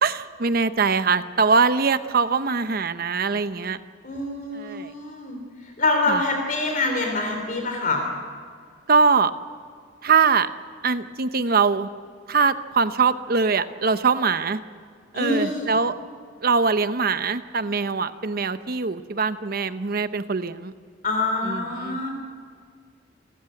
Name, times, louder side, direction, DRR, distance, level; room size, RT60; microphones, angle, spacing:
voice 1, 0.0-3.8 4.5-4.9 6.1-6.2 8.9-9.3 10.0-10.5 10.8-11.9 12.3-14.6 15.1-15.9 16.4-20.7 21.4-22.0, right 5 dB, 55° right, 12 dB, 0.9 m, -22 dB
voice 2, 4.0-5.4 5.8-8.1 15.1-15.7 21.0-22.1, left 2 dB, 50° left, 3 dB, 3.3 m, -25 dB
29.0 x 14.5 x 7.9 m, 2.1 s
head